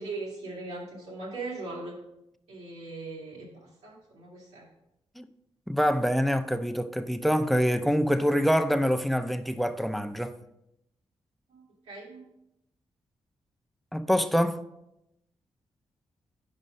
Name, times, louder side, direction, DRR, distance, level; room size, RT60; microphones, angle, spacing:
voice 1, 0.0-1.9 2.5-4.6 11.5-12.2, right 3 dB, 85° right, 2.6 m, -39 dB
voice 2, 5.7-10.3 13.9-14.6, equal, ahead, 0.5 m, -25 dB
5.4 x 5.3 x 5.1 m
cardioid pair, 55°, 11 cm